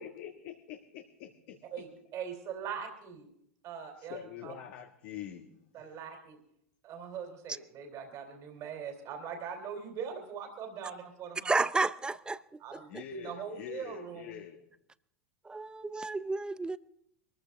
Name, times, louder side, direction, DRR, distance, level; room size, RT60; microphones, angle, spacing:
voice 1, 0.0-1.9 4.0-5.5 5.8-6.0 12.9-14.6, left 11 dB, 60° left, 3 dB, 1.6 m, -45 dB
voice 2, 1.7-3.3 3.6-4.5 5.7-6.4 6.8-11.6 12.6-14.3, right 7 dB, 45° right, 4 dB, 3.4 m, -41 dB
voice 3, 11.4-13.0 15.4-16.8, right 3 dB, 10° right, 17 dB, 0.6 m, -32 dB
23.0 x 14.5 x 3.6 m, 0.73 s
hypercardioid pair, 85°, 7 cm